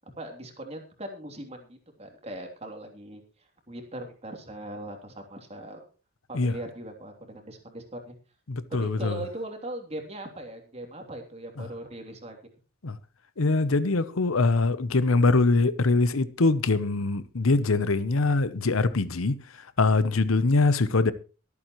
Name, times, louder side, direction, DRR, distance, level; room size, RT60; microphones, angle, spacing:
voice 1, 0.2-5.8 6.3-8.1 8.8-12.4, right 1 dB, 30° right, 3.1 m, -40 dB
voice 2, 8.5-9.2 11.6-11.7 12.8-13.0 13.4-19.4 19.8-21.1, left 3 dB, 85° left, 0.9 m, -23 dB
23.5 x 8.5 x 3.1 m
head